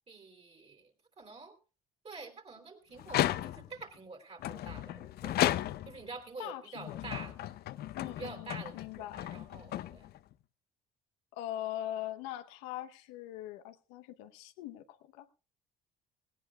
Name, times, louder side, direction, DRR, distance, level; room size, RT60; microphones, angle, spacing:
voice 1, 0.1-0.9 1.2-1.6 2.0-5.5 5.9-7.6 8.0-10.1, right 4 dB, 35° right, 6 dB, 3.4 m, -47 dB
sound 1, 3.0-3.8 4.4-6.1 6.8-10.3, left 13 dB, 60° left, 0.6 m, -34 dB
voice 2, 6.4-7.0 7.9-9.2 11.3-15.3, left 13 dB, 80° left, 9 dB, 0.9 m, -41 dB
17.5 x 17.5 x 2.3 m, 0.33 s
hypercardioid pair, 65°, 19 cm